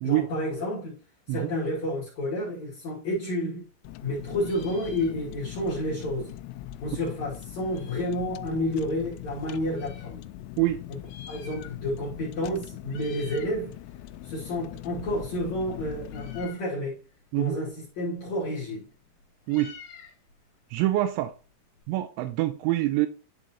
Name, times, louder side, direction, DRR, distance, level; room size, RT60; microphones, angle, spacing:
voice 1, 0.0-1.0 1.3-3.6 4.0-6.3 6.8-10.2 10.9-11.0 11.3-13.7 14.2-17.0 17.4-18.9, left 1 dB, 45° left, 2.7 m, -30 dB
Meow, 3.1-4.1 4.3-5.6 5.9-6.0 6.2-8.3 8.9-10.1 10.9-12.1 12.4-12.6 12.8-13.6 14.0-21.8, left 6 dB, 65° left, 3.2 m, -51 dB
Car, 3.8-16.5, left 13 dB, 90° left, 3.1 m, -41 dB
voice 2, 20.7-21.3 21.9-23.1, right 16 dB, 85° right, 2.8 m, -25 dB
11.0 x 3.9 x 2.8 m
omnidirectional pair, 5.7 m